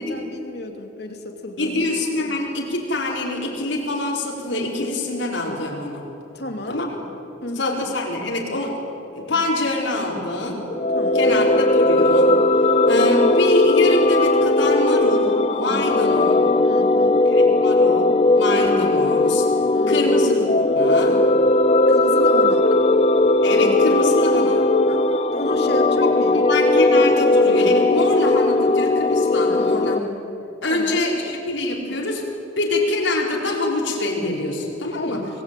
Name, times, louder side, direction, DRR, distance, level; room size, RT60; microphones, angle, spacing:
voice 1, 0.0-2.3 6.3-6.8 7.4-7.8 10.9-11.4 15.8-16.2 16.6-17.3 19.7-20.3 21.9-22.7 24.3-24.6 24.9-26.4 29.5-29.8 30.7-31.1 34.9-35.3, left 1 dB, 60° left, 4 dB, 2.9 m, -32 dB
voice 2, 1.6-6.0 6.7-6.9 7.5-8.8 9.1-10.6 11.1-12.4 12.8-16.3 17.2-19.5 19.9-21.2 23.4-24.7 26.0-30.0 30.6-32.3 32.6-35.2, left 2 dB, 85° left, -1 dB, 5.1 m, -25 dB
sound 1, 10.7-30.0, left 2 dB, 35° left, 0.6 m, -18 dB
26.5 x 20.0 x 9.3 m, 3.0 s
head